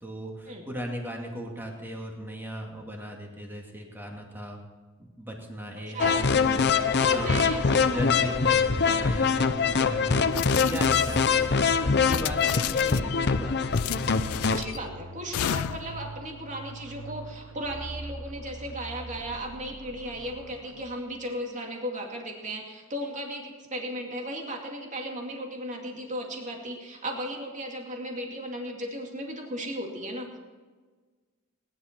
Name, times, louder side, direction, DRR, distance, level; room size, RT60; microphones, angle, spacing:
voice 1, 0.0-4.6 5.2-6.7 7.1-11.5 11.8-13.6, equal, 10° right, 0 dB, 2.3 m, -37 dB
sound 1, 6.0-14.6, left 5 dB, 50° left, 0.7 m, -24 dB
voice 2, 7.0-8.2 14.5-30.4, right 1 dB, 35° right, 1 dB, 2.4 m, -36 dB
sound 2, 7.1-21.2, right 2 dB, 85° right, 1.1 m, -42 dB
sound 3, 10.3-11.4 12.0-13.2 13.7-14.8 15.3-16.0, left 11 dB, 80° left, 0.3 m, -33 dB
19.0 x 11.0 x 4.5 m, 1.4 s
head